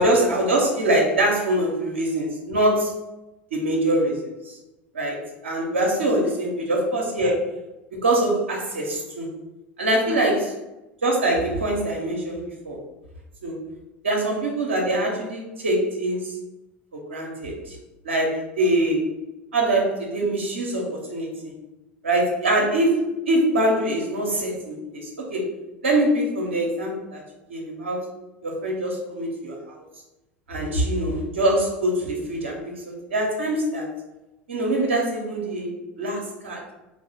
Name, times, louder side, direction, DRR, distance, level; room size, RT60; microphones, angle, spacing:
voice 1, 0.0-3.0 3.5-4.6 4.9-7.5 8.0-9.3 9.8-10.5 11.0-12.8 13.4-13.6 14.0-16.4 16.9-17.8 18.0-19.1 19.5-21.3 22.0-25.5 25.8-27.2 27.5-28.1 28.4-29.8 30.5-33.9 34.5-35.7 36.0-36.6, right 1 dB, 85° right, -1 dB, 0.6 m, -23 dB
2.7 x 2.0 x 4.0 m, 0.99 s
hypercardioid pair, 80°, 6 cm